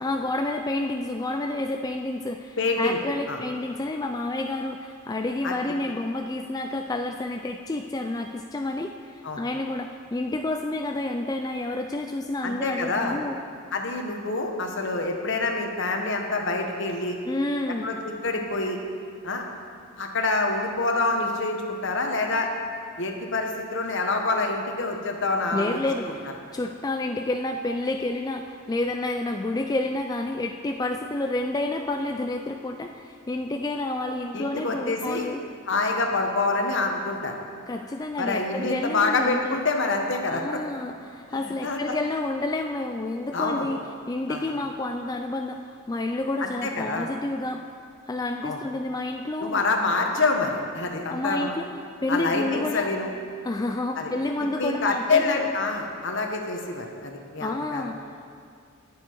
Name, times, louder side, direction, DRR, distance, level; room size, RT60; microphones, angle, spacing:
voice 1, 0.0-13.4 17.3-17.9 25.5-35.4 37.7-39.6 40.3-43.8 44.1-47.6 48.1-49.6 51.1-51.7 52.0-52.9 53.4-55.5 57.4-58.1, left 2 dB, 15° left, 4 dB, 0.3 m, -29 dB
voice 2, 2.6-3.0 3.3-3.4 5.4-5.5 9.2-9.4 12.4-13.2 13.7-17.2 17.8-18.8 19.2-19.4 20.0-22.5 23.0-25.8 26.1-26.2 34.3-35.3 35.7-37.3 38.2-40.6 41.4-41.9 43.3-43.7 44.3-44.4 46.4-47.1 48.4-48.6 49.4-51.5 52.1-53.1 53.9-54.1 54.6-57.8, left 3 dB, 60° left, 2 dB, 1.3 m, -26 dB
18.5 x 7.0 x 4.6 m, 2.2 s
head